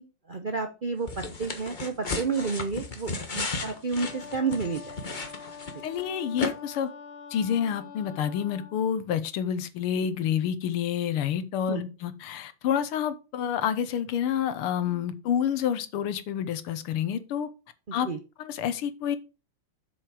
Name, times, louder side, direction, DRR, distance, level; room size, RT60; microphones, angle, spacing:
voice 1, 0.0-5.2 5.7-5.8 11.7-11.8 17.9-18.2, right 4 dB, 85° right, 5 dB, 0.4 m, -31 dB
sound 1, 1.1-6.0 6.4-6.5, left 3 dB, 30° left, 1.1 m, -34 dB
Wind instrument woodwind instrument, 4.0-8.8, left 6 dB, 70° left, 2.3 m, -45 dB
voice 2, 5.8-6.9 7.3-17.5 17.9-18.1 18.4-19.2, left 9 dB, 90° left, 12 dB, 1.9 m, -28 dB
7.6 x 6.4 x 4.9 m, 0.30 s
omnidirectional pair, 2.4 m